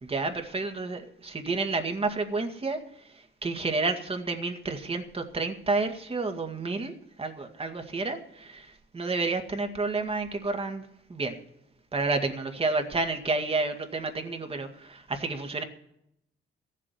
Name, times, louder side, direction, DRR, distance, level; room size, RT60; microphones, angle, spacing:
voice 1, 0.0-11.4 11.9-15.6, right 3 dB, 30° right, 6 dB, 2.0 m, -30 dB
15.0 x 7.5 x 9.4 m, 0.79 s
cardioid pair, 90°, 20 cm